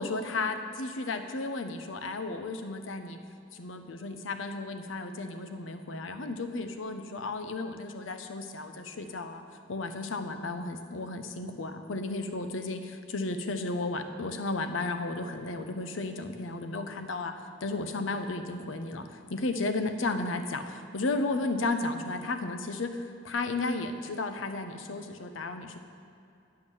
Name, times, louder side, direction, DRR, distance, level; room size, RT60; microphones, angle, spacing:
voice 1, 0.0-3.2 3.5-9.4 9.7-25.8, left 3 dB, 90° left, 7 dB, 0.7 m, -34 dB
10.0 x 5.9 x 6.4 m, 2.6 s
head